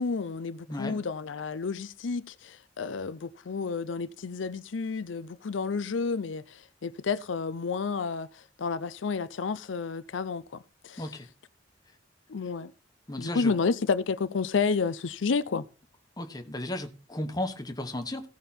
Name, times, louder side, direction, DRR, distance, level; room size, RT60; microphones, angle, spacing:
voice 1, 0.0-8.3 8.6-10.4 10.8-11.0 12.3-12.7 13.2-15.6, left 5 dB, 85° left, 0.5 m, -30 dB
voice 2, 13.1-13.5 16.2-18.3, left 1 dB, 20° left, 1.2 m, -34 dB
16.5 x 5.5 x 4.3 m
head